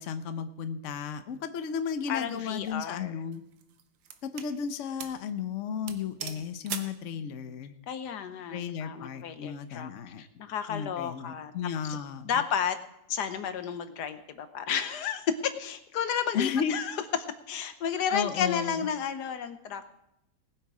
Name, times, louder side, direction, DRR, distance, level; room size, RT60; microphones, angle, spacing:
voice 1, 0.0-3.4 4.2-7.8 8.5-10.2 10.7-12.4 16.3-16.8 18.1-18.9, left 7 dB, 80° left, 10 dB, 0.6 m, -34 dB
voice 2, 2.1-3.1 7.9-9.9 10.2-11.5 12.2-12.8 13.1-16.9 17.5-19.9, left 7 dB, 60° left, 10 dB, 1.3 m, -32 dB
sound 1, 2.3-2.6 3.3-4.5 5.0-5.2 5.5-5.6 5.9-7.0, right 9 dB, 80° right, 1.8 m, -40 dB
19.5 x 8.1 x 4.9 m, 0.84 s
omnidirectional pair, 2.3 m